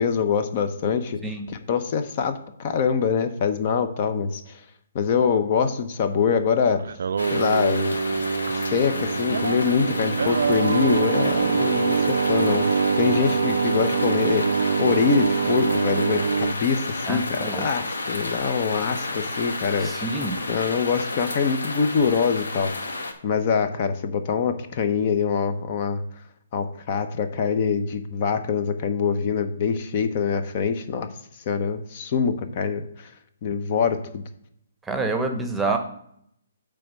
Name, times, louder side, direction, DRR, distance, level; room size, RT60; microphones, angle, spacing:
voice 1, 0.0-1.2 1.5-4.6 4.9-6.8 7.3-8.0 8.7-19.9 20.5-22.9 23.2-26.0 26.5-31.1 31.5-33.1 33.4-34.2, left 6 dB, 45° left, 9 dB, 0.8 m, -24 dB
Singing, 6.8-16.6, right 5 dB, 70° right, 0.4 m, -24 dB
sound 1, 7.2-23.1, left 2 dB, 85° left, 1.3 m, -32 dB
voice 2, 17.1-17.7 19.8-20.4 34.9-35.8, right 3 dB, 5° right, 4 dB, 0.9 m, -27 dB
8.6 x 3.5 x 6.2 m, 0.72 s
hypercardioid pair, 140°, 0 cm